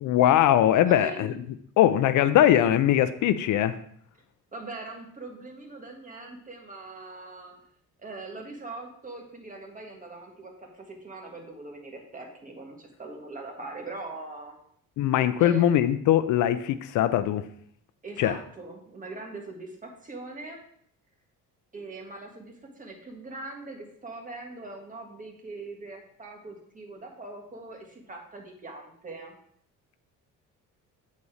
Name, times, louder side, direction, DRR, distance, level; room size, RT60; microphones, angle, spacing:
voice 1, 0.0-1.4 1.8-3.8 15.0-17.5 18.2-18.4, left 11 dB, 65° left, 13 dB, 0.5 m, -21 dB
voice 2, 0.8-1.3 4.5-7.6 8.0-14.6 15.4-15.7 18.0-20.6 21.7-29.4, right 2 dB, 25° right, 1 dB, 1.8 m, -41 dB
8.4 x 4.2 x 4.8 m, 0.64 s
cardioid pair, 110°, 32 cm